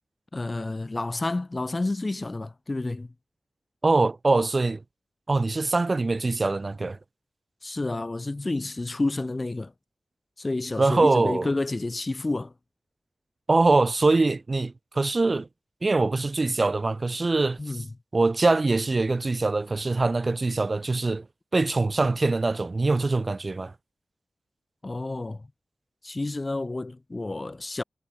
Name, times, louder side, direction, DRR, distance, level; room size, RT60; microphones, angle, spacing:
voice 1, 0.3-3.1 7.6-9.7 10.4-12.5 17.6-17.9 24.8-25.5 26.0-27.8, left 2 dB, 35° left, 3.6 m, -30 dB
voice 2, 3.8-4.8 5.3-7.0 10.8-11.5 13.5-15.5 15.8-17.6 18.1-21.3 21.5-23.7, right 3 dB, 40° right, 4.0 m, -23 dB
wide cardioid pair, 75°, 0 cm